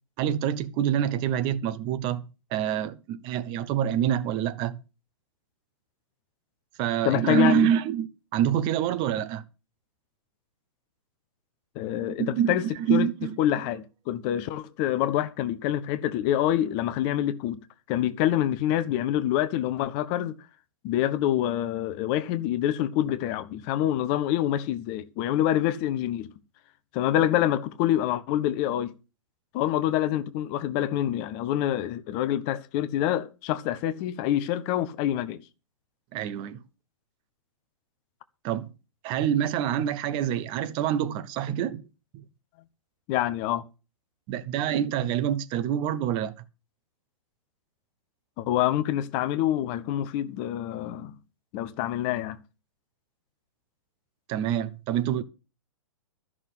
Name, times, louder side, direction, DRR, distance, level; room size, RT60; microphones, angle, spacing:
voice 1, 0.2-4.8 6.8-9.4 12.0-13.3 36.1-36.6 38.4-38.7 39.0-41.8 42.1-42.2 44.3-46.3 54.3-55.2, right 10 dB, 30° right, 1.0 m, -26 dB
voice 2, 7.0-7.7 11.7-12.6 12.9-13.1 13.4-17.6 17.9-20.4 20.8-26.3 26.9-28.9 29.5-35.4 43.1-43.6 48.4-51.2 51.5-52.4, left 12 dB, 30° left, 0.8 m, -26 dB
13.5 x 6.2 x 8.0 m
figure-of-eight pair, 115°, 17 cm